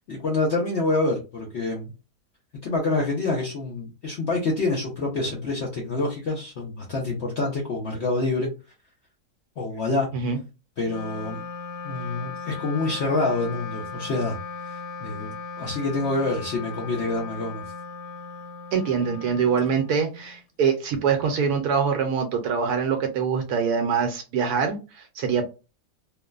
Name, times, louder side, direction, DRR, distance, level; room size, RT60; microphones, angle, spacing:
voice 1, 0.1-1.9 2.6-8.5 9.6-10.1 10.8-11.4 11.8-14.4 14.6-15.3 15.6-17.6, left 2 dB, 55° left, -2 dB, 0.8 m, -27 dB
Wind instrument woodwind instrument, 10.8-20.4, left 4 dB, 90° left, 1.2 m, -37 dB
voice 2, 18.7-25.4, right 6 dB, 75° right, 5 dB, 1.0 m, -24 dB
3.1 x 2.1 x 2.3 m, 0.30 s
omnidirectional pair, 1.7 m